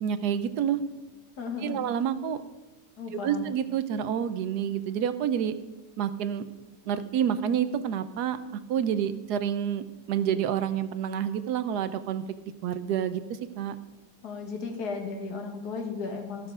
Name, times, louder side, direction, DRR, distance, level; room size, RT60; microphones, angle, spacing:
voice 1, 0.0-0.8 1.6-2.4 3.1-5.5 6.0-6.4 6.9-12.3 12.6-13.2 13.6-13.8, right 9 dB, 90° right, 12 dB, 1.2 m, -28 dB
voice 2, 1.4-1.8 3.0-3.5 14.2-16.5, left 4 dB, 85° left, 4 dB, 2.0 m, -35 dB
13.5 x 6.5 x 4.9 m, 1.3 s
omnidirectional pair, 1.7 m